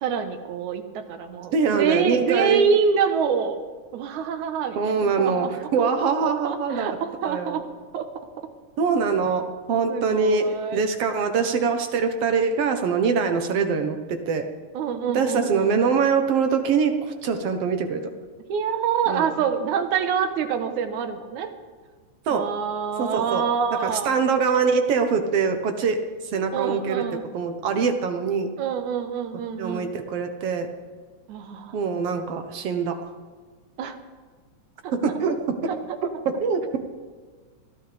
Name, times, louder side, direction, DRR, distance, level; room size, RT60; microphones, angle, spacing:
voice 1, 0.0-3.7 3.9-5.7 6.2-7.7 7.9-8.1 8.4-8.5 9.9-10.8 14.7-15.7 18.5-21.5 22.3-24.1 26.5-27.2 28.6-29.9 31.3-31.8 33.8-34.0 34.8-34.9 35.7-36.0, right 6 dB, 80° right, 8 dB, 2.5 m, -26 dB
voice 2, 1.5-2.7 4.8-7.0 7.2-7.6 8.8-14.5 15.1-18.1 19.1-19.3 22.3-22.5 23.0-23.4 23.8-26.0 26.3-27.0 27.3-28.5 29.6-30.7 31.7-33.0 34.9-35.4 36.4-36.8, right 5 dB, 60° right, 6 dB, 1.9 m, -23 dB
22.5 x 15.0 x 3.5 m, 1.5 s
omnidirectional pair, 3.5 m